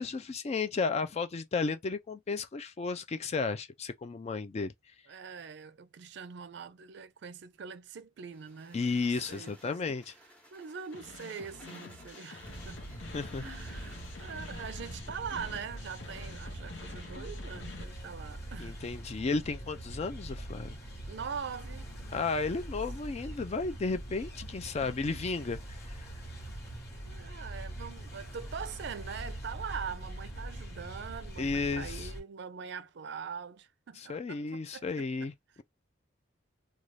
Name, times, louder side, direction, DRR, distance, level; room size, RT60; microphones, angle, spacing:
voice 1, 0.0-4.7 8.7-10.1 13.1-13.5 18.6-20.8 22.1-26.0 31.4-32.1 34.0-35.6, left 4 dB, 35° left, 0.3 m, -33 dB
voice 2, 5.1-8.8 9.3-9.8 10.5-12.8 13.4-18.8 21.1-22.6 27.1-35.3, right 6 dB, 60° right, 0.4 m, -43 dB
sound 1, 8.3-14.8, equal, 5° left, 0.8 m, -57 dB
sound 2, 10.9-17.8, left 3 dB, 75° left, 0.8 m, -48 dB
sound 3, 12.4-32.2, right 1 dB, 55° left, 1.2 m, -43 dB
2.6 x 2.3 x 3.1 m
head